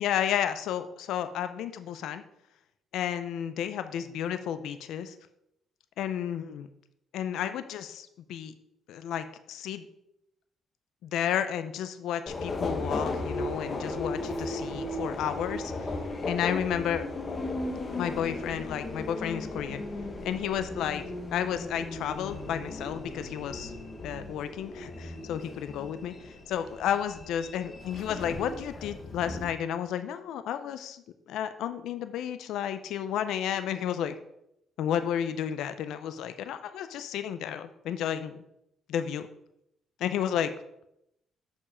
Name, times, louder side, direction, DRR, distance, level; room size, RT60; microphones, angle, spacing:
voice 1, 0.0-2.2 2.9-5.2 6.0-6.7 7.1-8.5 8.9-9.9 11.0-15.9 16.3-17.1 17.9-19.8 20.2-21.0 21.3-23.7 24.0-34.2 34.8-38.4 38.9-39.3 40.0-40.5, left 9 dB, 85° left, 11 dB, 0.5 m, -32 dB
Subway metro underground, 12.3-29.5, left 2 dB, 35° left, 1.3 m, -36 dB
7.1 x 5.4 x 4.9 m, 0.80 s
cardioid pair, 90°, 0 cm